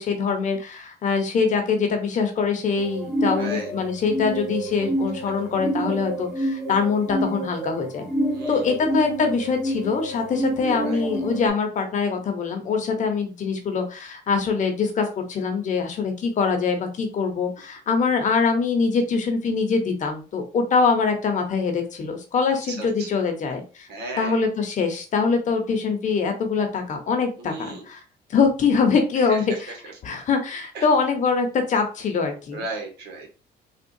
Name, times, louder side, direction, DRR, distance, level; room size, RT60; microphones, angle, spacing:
voice 1, 0.0-8.0 8.5-23.9 24.2-28.0 28.3-29.7 30.0-32.6, left 5 dB, 45° left, 5 dB, 0.9 m, -23 dB
sound 1, 2.8-11.5, right 1 dB, ahead, 1.0 m, -28 dB
voice 2, 3.4-3.7 8.3-8.7 10.8-11.0 22.7-23.1 23.9-24.4 27.4-27.9 29.3-29.8 30.7-30.8 32.5-33.3, right 3 dB, 75° right, 1 dB, 1.4 m, -35 dB
3.6 x 2.4 x 2.6 m, 0.34 s
cardioid pair, 110°, 17 cm